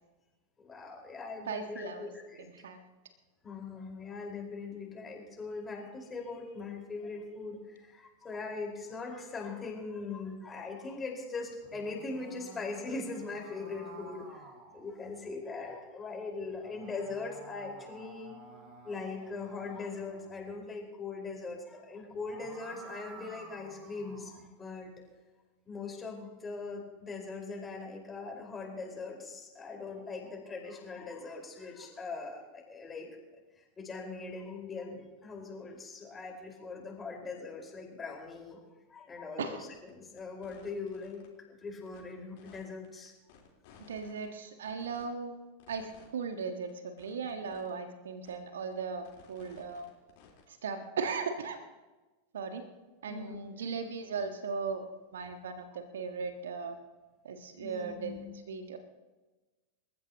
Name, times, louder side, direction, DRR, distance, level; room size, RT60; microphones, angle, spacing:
voice 1, 0.6-2.7 3.4-14.5 14.7-18.3 18.8-24.9 25.7-33.1 33.6-38.6 38.9-43.1 53.1-53.4 55.2-55.3 57.6-58.3, left 4 dB, 15° left, 0 dB, 4.9 m, -41 dB
voice 2, 1.5-2.1 2.6-2.8 39.4-39.6 43.9-45.4 45.7-49.8 50.5-51.6 52.3-52.6 53.0-54.9 55.1-56.8 57.2-58.8, right 5 dB, 65° right, 7 dB, 1.6 m, -37 dB
sound 1, 11.5-15.4 16.4-20.6 22.0-24.5, right 2 dB, 35° right, 4.2 m, -52 dB
sound 2, 39.7-39.9 40.2-41.3 41.9-42.0 42.4-44.3 44.6-45.1 45.6-46.1 46.4-46.5 46.7-46.8 47.0-47.7 48.3-48.4 48.7-50.5, left 7 dB, 50° left, 4.0 m, -57 dB
28.0 x 14.5 x 3.0 m, 1.2 s
figure-of-eight pair, 90°, 0 cm